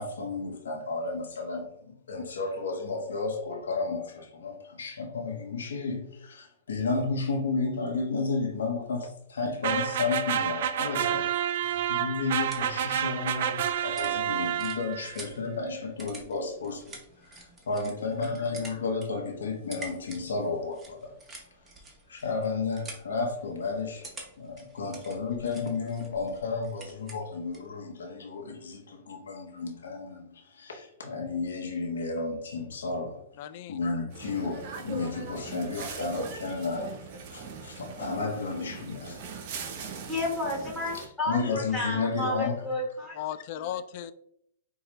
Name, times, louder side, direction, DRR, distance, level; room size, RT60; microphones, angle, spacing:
voice 1, 0.0-16.8 17.7-21.1 22.1-24.1 24.4-36.9 37.3-39.2 39.8-39.9 40.9-42.6, left 4 dB, 85° left, 0.9 m, -32 dB
sound 1, 9.6-15.2, right 10 dB, 65° right, 0.3 m, -29 dB
sound 2, 12.2-27.7, right 2 dB, 15° right, 0.9 m, -49 dB
voice 2, 33.4-33.8 43.1-44.1, left 10 dB, 50° left, 0.3 m, -36 dB
sound 3, 34.1-41.1, right 4 dB, 50° right, 0.7 m, -40 dB
voice 3, 40.1-43.2, left 1 dB, 5° left, 1.5 m, -31 dB
4.5 x 2.3 x 3.1 m
hypercardioid pair, 140°, 0 cm